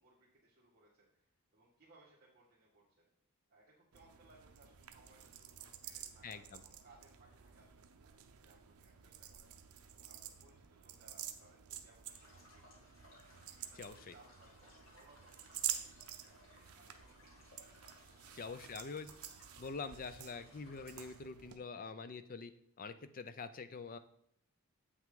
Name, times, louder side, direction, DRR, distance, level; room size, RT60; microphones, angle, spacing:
voice 1, 0.0-3.1 3.5-12.9 13.6-17.5 18.1-18.5, right 2 dB, 40° right, -8 dB, 1.7 m, -66 dB
sound 1, 3.9-21.6, right 11 dB, 80° right, 0.6 m, -49 dB
voice 2, 6.2-6.6 13.8-14.1 18.3-19.1 19.6-22.5 22.8-24.0, left 4 dB, 40° left, 11 dB, 0.5 m, -45 dB
sound 2, 12.0-21.2, left 1 dB, 65° left, 2.3 m, -63 dB
7.9 x 5.9 x 3.7 m, 0.71 s
head